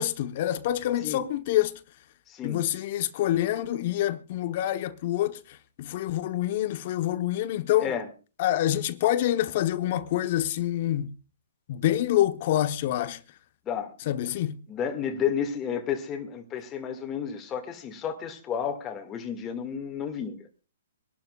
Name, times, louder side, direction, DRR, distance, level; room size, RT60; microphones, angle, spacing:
voice 1, 0.0-1.7 2.4-5.4 5.8-7.9 8.4-11.1 11.7-13.2 14.1-14.6, left 13 dB, 45° left, 0.9 m, -26 dB
voice 2, 2.3-2.6 7.8-8.1 13.7-13.9 14.7-20.4, left 8 dB, 20° left, 1.9 m, -31 dB
25.0 x 12.0 x 2.3 m
hypercardioid pair, 135°, 0 cm